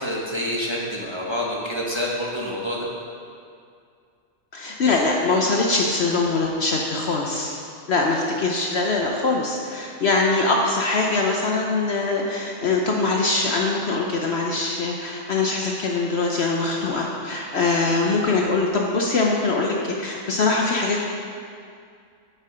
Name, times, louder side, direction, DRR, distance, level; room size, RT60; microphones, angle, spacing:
voice 1, 0.0-2.9, equal, 20° right, -4 dB, 1.0 m, -27 dB
voice 2, 4.5-7.6 7.9-21.0, left 3 dB, 55° left, 0 dB, 0.8 m, -22 dB
8.6 x 6.7 x 5.0 m, 2.3 s
omnidirectional pair, 1.5 m